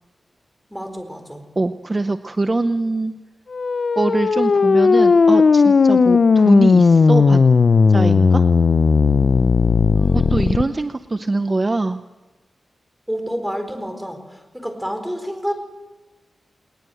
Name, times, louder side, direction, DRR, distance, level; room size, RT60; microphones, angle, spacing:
voice 1, 0.7-1.5 9.9-10.7 13.1-15.5, equal, ahead, 6 dB, 4.4 m, -29 dB
voice 2, 1.6-3.2 4.0-7.4 7.9-8.5 10.1-12.0, right 2 dB, 30° right, 10 dB, 0.7 m, -23 dB
sound 1, 3.5-10.6, left 4 dB, 60° left, 0.6 m, -15 dB
21.0 x 20.0 x 7.9 m, 1.2 s
wide cardioid pair, 100°, 0 cm